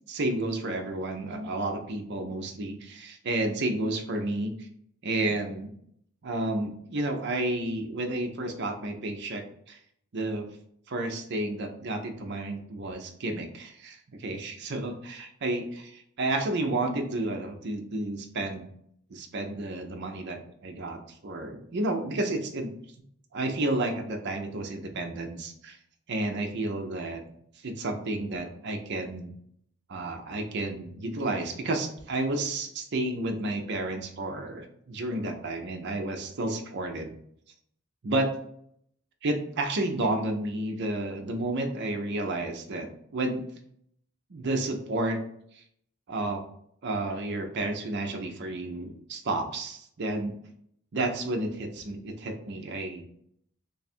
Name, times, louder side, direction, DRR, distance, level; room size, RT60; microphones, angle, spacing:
voice 1, 0.1-4.7 5.0-5.7 6.2-9.8 10.1-10.5 10.9-15.6 16.2-18.7 19.1-22.7 23.3-25.8 26.1-27.2 27.6-29.3 29.9-37.1 38.0-38.3 39.2-42.9 43.1-43.4 44.3-45.2 45.5-45.6 46.1-46.4 46.8-50.3 50.9-53.0, right 2 dB, 50° right, 4 dB, 0.5 m, -31 dB
3.3 x 2.4 x 4.1 m, 0.68 s
head